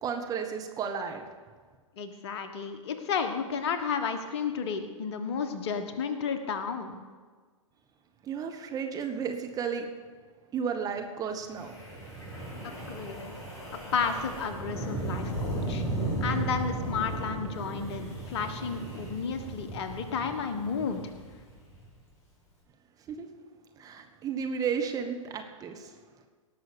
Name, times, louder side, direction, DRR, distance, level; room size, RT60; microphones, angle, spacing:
voice 1, 0.0-1.2 8.2-9.9 10.5-11.8 23.1-23.3 23.8-25.9, right 6 dB, 20° right, 4 dB, 1.3 m, -33 dB
voice 2, 2.0-7.0 12.6-13.4 13.9-15.8 16.2-21.0, left 6 dB, 50° left, 8 dB, 1.4 m, -32 dB
Wind, 11.6-21.8, right 2 dB, 20° left, 4.9 m, -36 dB
18.5 x 6.3 x 6.8 m, 1.5 s
figure-of-eight pair, 115°, 17 cm